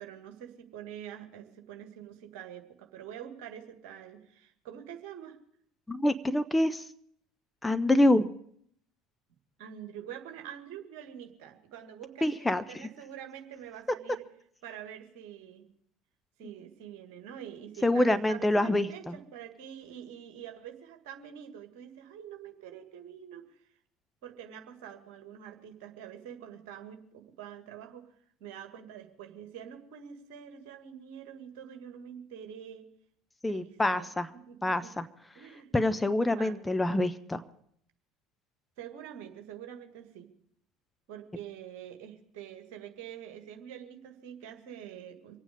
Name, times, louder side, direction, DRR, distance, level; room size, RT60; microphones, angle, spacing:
voice 1, 0.0-5.4 9.6-14.2 14.6-15.7 16.4-23.6 24.2-28.1 28.4-32.9 33.5-34.1 34.5-34.9 35.4-35.7 36.4-36.6 38.8-40.3 41.1-45.4, right 9 dB, 55° right, 5 dB, 1.8 m, -46 dB
voice 2, 5.9-6.9 7.6-8.3 12.2-12.9 17.8-19.2 33.4-34.3 34.6-35.1 35.7-37.4, left 1 dB, 10° left, 10 dB, 0.6 m, -26 dB
24.5 x 9.0 x 5.0 m, 0.66 s
figure-of-eight pair, 65°, 0 cm